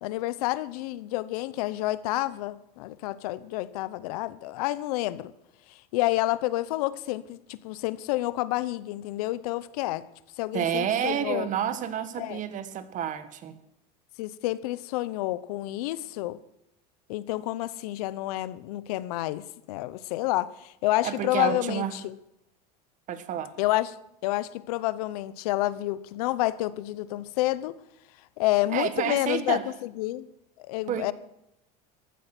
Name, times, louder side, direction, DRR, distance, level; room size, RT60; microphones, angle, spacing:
voice 1, 0.0-5.3 5.7-10.0 10.4-11.5 12.2-12.4 14.2-16.4 17.1-22.2 23.6-24.0 24.2-27.8 28.4-30.3 30.6-31.1, left 17 dB, 75° left, 0.8 m, -29 dB
voice 2, 10.5-13.6 21.0-21.9 23.1-23.5 28.7-29.6 30.9-31.1, right 10 dB, 40° right, 1.5 m, -29 dB
14.5 x 12.5 x 6.0 m
supercardioid pair, 120°, 19 cm